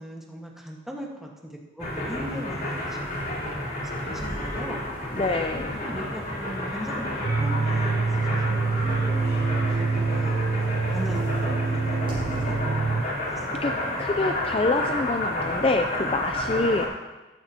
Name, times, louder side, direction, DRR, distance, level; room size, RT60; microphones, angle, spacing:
voice 1, 0.0-4.8 5.8-9.1 9.8-10.5 10.9-12.7 13.3-13.5 13.7-14.0, equal, ahead, -1 dB, 1.5 m, -39 dB
sound 1, 1.8-16.9, left 1 dB, 50° left, 3.6 m, -31 dB
sound 2, 1.9-12.9 13.3-13.4 14.9-15.8, equal, 30° right, 4.6 m, -44 dB
voice 2, 5.1-5.8 9.7-9.8 13.6-13.7 14.0-16.9, left 2 dB, 30° left, 5 dB, 0.4 m, -26 dB
sound 3, 7.2-13.0, right 4 dB, 45° right, 0.4 m, -25 dB
14.0 x 12.5 x 2.9 m, 1.1 s
head